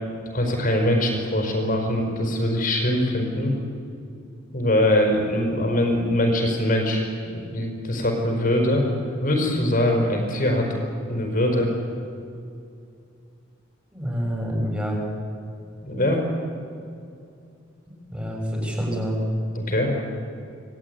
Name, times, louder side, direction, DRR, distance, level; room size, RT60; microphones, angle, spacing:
voice 1, 0.3-3.5 4.5-8.9 9.2-10.7 11.1-11.7 15.8-16.2 19.5-19.9, left 1 dB, 45° left, 2 dB, 5.4 m, -22 dB
voice 2, 13.9-15.0 18.1-19.2, equal, 5° right, 0 dB, 7.0 m, -27 dB
26.5 x 20.0 x 9.8 m, 2.5 s
head